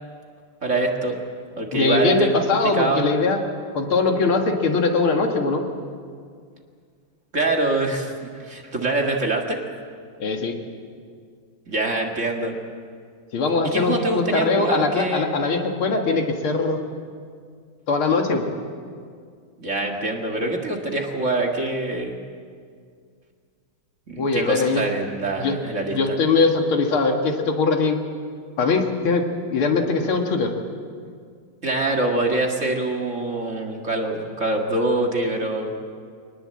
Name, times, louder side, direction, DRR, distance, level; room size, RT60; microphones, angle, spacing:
voice 1, 0.6-1.2 1.6-2.4 2.7-3.4 7.3-9.6 11.7-12.5 13.6-15.3 19.6-22.2 24.1-26.2 31.6-35.7, right 2 dB, 35° right, 1 dB, 2.0 m, -25 dB
voice 2, 1.7-3.4 3.7-5.6 10.2-10.5 13.3-16.8 17.9-18.4 24.2-24.8 25.4-25.5 25.9-28.0 28.6-29.2 29.5-30.5, left 3 dB, 75° left, 3 dB, 2.6 m, -21 dB
24.0 x 19.5 x 7.7 m, 2.1 s
omnidirectional pair, 2.4 m